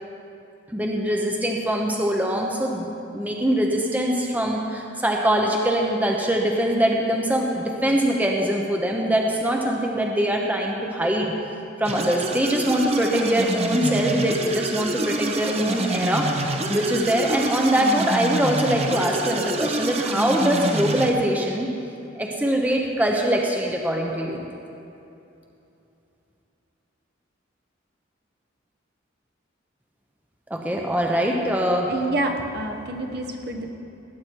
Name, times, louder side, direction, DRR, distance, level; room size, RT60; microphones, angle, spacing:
voice 1, 0.7-2.9 3.1-11.3 11.8-21.7 22.2-24.5 30.5-31.9, equal, 10° right, 0 dB, 0.9 m, -23 dB
sound 1, 11.8-21.1, right 2 dB, 30° right, 0.9 m, -27 dB
voice 2, 31.9-33.7, right 2 dB, 55° right, 3 dB, 1.2 m, -28 dB
18.5 x 9.4 x 4.7 m, 2.8 s
head